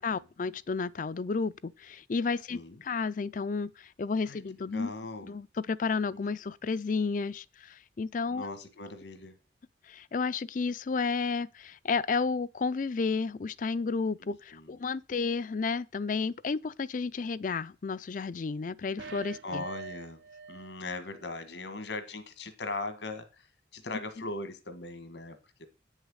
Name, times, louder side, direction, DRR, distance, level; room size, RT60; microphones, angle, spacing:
voice 1, 0.0-4.9 5.2-8.5 9.9-19.6, left 4 dB, 45° left, 0.4 m, -32 dB
voice 2, 2.5-2.8 4.2-4.4 4.7-5.4 6.1-6.2 8.3-9.3 14.2-14.7 19.4-20.2 20.5-23.5 23.7-25.7, left 2 dB, 80° left, 1.6 m, -39 dB
sound 1, 19.0-20.8 21.1-21.2, right 5 dB, 75° right, 0.5 m, -44 dB
8.9 x 6.3 x 6.3 m
head